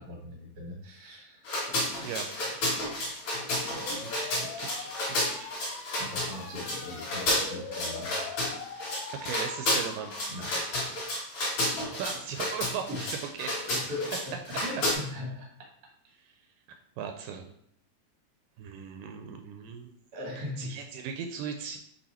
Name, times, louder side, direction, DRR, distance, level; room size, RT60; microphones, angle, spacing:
voice 1, 0.0-1.4 6.0-8.3 10.3-11.1 12.9-13.1 13.6-14.3 14.6-15.7 20.1-20.8, left 1 dB, 55° right, 0 dB, 1.0 m, -39 dB
sound 1, 1.4-14.9, left 1 dB, 50° left, 3.5 m, -31 dB
voice 2, 2.0-3.1 3.6-5.7 9.1-10.3 11.9-13.0 13.4-13.9 16.2-16.4 17.0-17.4 18.6-19.9 20.6-21.8, right 7 dB, 80° right, 5 dB, 2.0 m, -39 dB
sound 2, 3.6-11.0, left 5 dB, 75° left, 1.7 m, -43 dB
8.3 x 2.8 x 4.2 m, 0.68 s
omnidirectional pair, 4.1 m